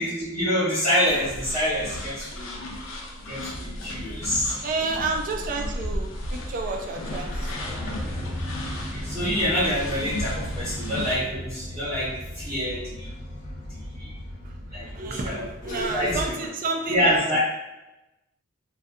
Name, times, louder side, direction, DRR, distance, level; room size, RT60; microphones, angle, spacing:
voice 1, 0.0-2.5 3.2-4.5 8.7-13.1 13.7-14.1 14.7-16.4 16.9-17.4, equal, 20° right, -10 dB, 0.7 m, -27 dB
sound 1, 1.0-11.2, left 1 dB, 90° left, 0.4 m, -34 dB
sound 2, 3.6-16.3, equal, 40° left, 0.6 m, -37 dB
voice 2, 4.6-7.8 14.8-17.4, right 3 dB, 45° right, 3 dB, 0.3 m, -30 dB
2.6 x 2.2 x 2.4 m, 0.98 s
head